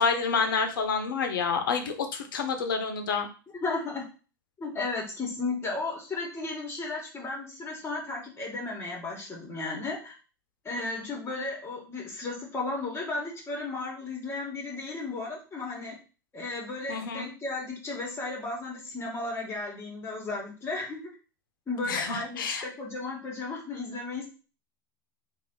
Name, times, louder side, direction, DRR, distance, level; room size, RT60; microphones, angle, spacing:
voice 1, 0.0-3.3 16.9-17.3 21.9-22.6, left 5 dB, 80° left, 6 dB, 0.8 m, -28 dB
voice 2, 3.6-4.0 4.6-10.1 10.6-16.0 16.3-21.0 21.7-24.2, left 3 dB, 20° left, -1 dB, 1.9 m, -34 dB
3.3 x 2.7 x 3.9 m, 0.35 s
hypercardioid pair, 100°, 11 cm